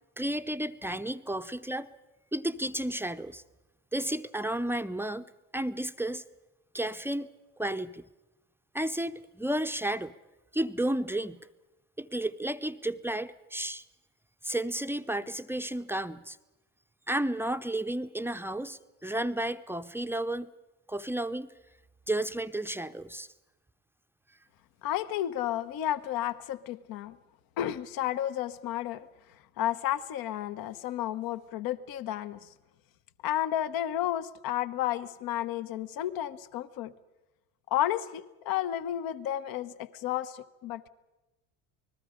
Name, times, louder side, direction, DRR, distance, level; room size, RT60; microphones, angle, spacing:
voice 1, 0.2-1.9 2.3-3.4 3.9-5.3 5.5-6.2 6.7-7.3 7.6-8.1 8.7-10.1 10.5-11.5 12.0-13.8 14.4-16.4 17.1-20.5 20.9-21.5 22.1-23.3, right 1 dB, 5° right, 8 dB, 0.7 m, -32 dB
voice 2, 24.8-27.2 27.6-29.1 29.6-32.5 33.2-36.9 37.7-40.9, left 12 dB, 60° left, 14 dB, 1.1 m, -32 dB
29.0 x 20.0 x 5.1 m, 1.0 s
supercardioid pair, 90°, 39 cm